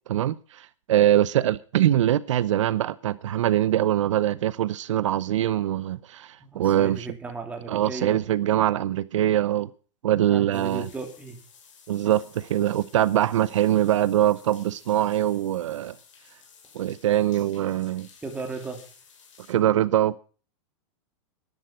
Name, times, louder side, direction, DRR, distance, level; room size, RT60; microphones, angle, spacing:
voice 1, 0.1-7.1 7.7-9.7 10.0-10.9 11.9-15.9 16.7-18.1 19.5-20.2, right 12 dB, 80° right, 0.7 m, -23 dB
voice 2, 6.4-8.2 10.3-11.4 18.2-18.8, right 3 dB, 10° right, 3.0 m, -35 dB
sound 1, 10.5-19.5, left 6 dB, 90° left, 4.9 m, -53 dB
11.5 x 11.5 x 6.0 m
supercardioid pair, 150°, 16 cm